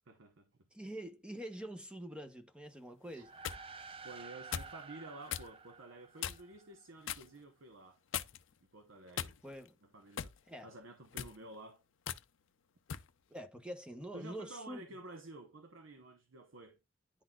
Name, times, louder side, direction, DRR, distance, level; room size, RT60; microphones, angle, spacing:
voice 1, 0.1-0.5 3.1-3.2 4.0-8.0 8.7-9.4 9.9-10.3 10.6-11.8 14.1-16.8, right 2 dB, 75° right, 0.8 m, -51 dB
voice 2, 0.7-3.3 9.4-9.8 10.5-10.7 13.3-14.8, right 1 dB, 5° right, 0.8 m, -45 dB
sound 1, 3.1-3.6 4.5-4.8 5.3-5.5 6.2-6.6 7.1-7.3 8.1-8.5 9.1-9.7 10.2-10.4 11.0-11.4 12.1-12.2 12.9-13.1, left 9 dB, 70° left, 0.5 m, -40 dB
sound 2, 3.1-6.8, right 4 dB, 30° right, 0.4 m, -51 dB
10.5 x 4.0 x 2.3 m
head